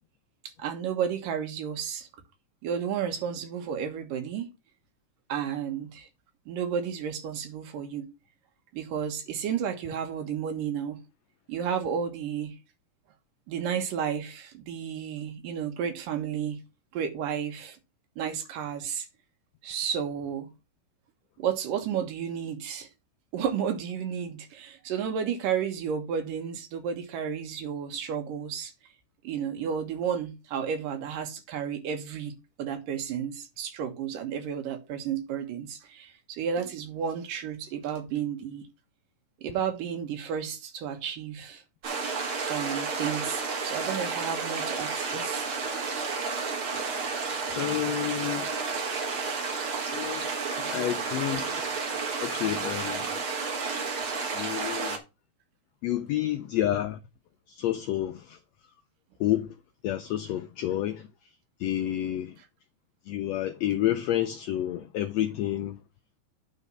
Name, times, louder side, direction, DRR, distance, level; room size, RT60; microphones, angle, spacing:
voice 1, 0.6-2.1 2.6-4.5 5.3-6.1 6.5-8.1 8.7-11.0 11.5-12.6 13.5-16.6 16.9-17.8 18.2-19.1 19.6-20.5 21.4-22.9 23.3-28.7 29.2-38.7 39.4-41.6 42.1-42.2 42.5-45.5 47.0-47.1, right 8 dB, 80° right, 2.9 m, -32 dB
sound 1, 41.8-55.0, right 4 dB, 50° right, 1.9 m, -31 dB
voice 2, 47.5-48.5 49.9-53.2 54.3-55.0 55.8-57.0 57.5-58.4 59.2-59.5 59.8-61.3 61.6-62.4 63.0-65.8, left 12 dB, 90° left, 1.5 m, -30 dB
9.2 x 4.1 x 5.4 m
omnidirectional pair, 3.8 m